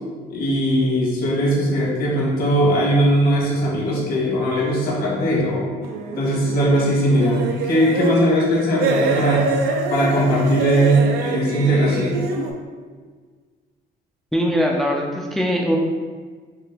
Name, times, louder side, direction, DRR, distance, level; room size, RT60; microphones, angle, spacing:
voice 1, 0.3-5.7 6.1-9.5 9.9-12.2, equal, 65° left, -5 dB, 1.3 m, -19 dB
sound 1, 5.8-8.3 8.8-12.5, right 4 dB, 70° right, 0.5 m, -25 dB
voice 2, 14.3-15.8, equal, ahead, -1 dB, 0.4 m, -21 dB
4.7 x 2.1 x 3.3 m, 1.5 s
cardioid pair, 110°, 17 cm